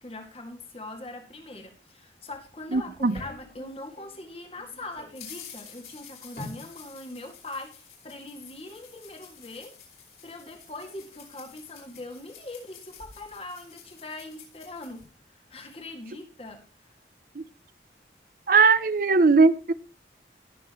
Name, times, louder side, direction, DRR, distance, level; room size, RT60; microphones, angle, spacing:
voice 1, 0.0-9.7 10.2-15.0 15.3-16.9, left 2 dB, 35° left, 2.1 m, -41 dB
sound 1, 2.3-4.2 4.5-15.0, left 4 dB, 60° left, 5.3 m, -48 dB
voice 2, 2.7-3.2 17.4-17.5 18.5-19.7, right 4 dB, 50° right, 0.6 m, -19 dB
18.5 x 7.0 x 3.1 m
head